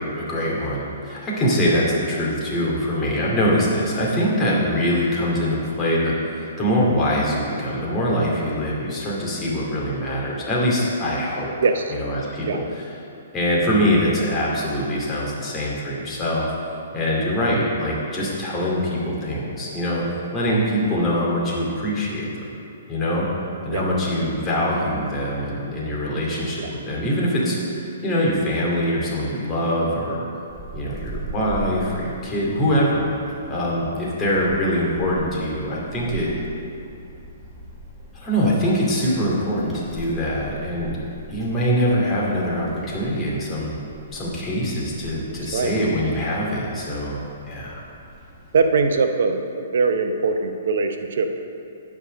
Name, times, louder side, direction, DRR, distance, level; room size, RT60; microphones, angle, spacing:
voice 1, 0.0-11.5 11.9-12.9 13.3-16.5 16.9-22.5 22.9-23.3 23.6-30.3 30.7-33.1 33.5-36.3 38.1-41.0 41.3-43.8 44.1-47.8, equal, 15° left, -6 dB, 2.4 m, -23 dB
voice 2, 11.6-11.9 12.5-12.6 23.7-23.8 26.6-26.7 45.5-45.7 47.1-47.2 48.5-51.3, right 4 dB, 60° right, 6 dB, 0.8 m, -21 dB
Wind, 30.5-49.0, right 1 dB, ahead, 1.7 m, -40 dB
10.0 x 4.8 x 6.4 m, 2.6 s
figure-of-eight pair, 120°, 0 cm